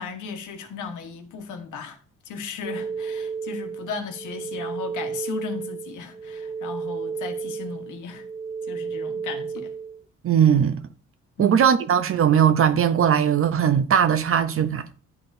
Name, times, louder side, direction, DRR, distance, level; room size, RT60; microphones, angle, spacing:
voice 1, 0.0-2.0 2.3-8.2 8.7-9.7 11.4-11.6, left 5 dB, 80° left, 1.3 m, -36 dB
sound 1, 2.6-10.0, right 5 dB, 10° right, 0.3 m, -33 dB
voice 2, 10.2-10.8 11.4-14.9, right 8 dB, 45° right, 0.7 m, -19 dB
11.0 x 4.0 x 2.7 m
cardioid pair, 90°, 30 cm